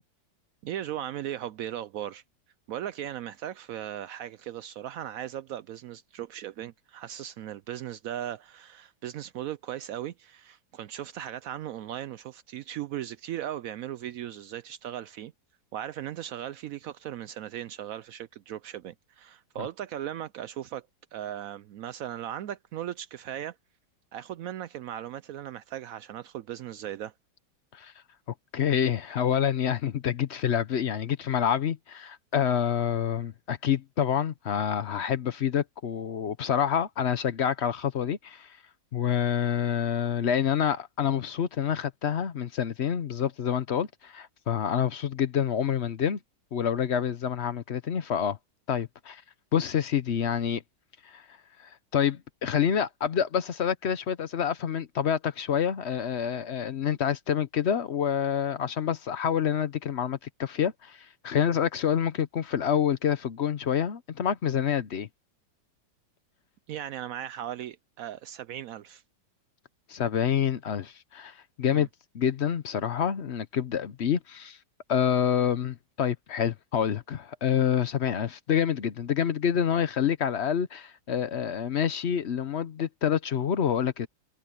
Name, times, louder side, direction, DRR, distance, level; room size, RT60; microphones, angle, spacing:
voice 1, 0.6-2.2 2.7-15.3 15.7-20.9 21.1-23.6 24.1-27.1 66.7-69.0 71.7-71.9, right 11 dB, 85° right, 0.7 m, -37 dB
voice 2, 28.5-38.5 38.9-46.2 46.5-48.4 48.7-49.2 49.5-50.6 51.1-51.2 51.6-61.0 61.2-65.1 69.9-71.9 72.1-74.6 74.9-84.1, left 8 dB, 55° left, 0.8 m, -27 dB
omnidirectional pair, 2.0 m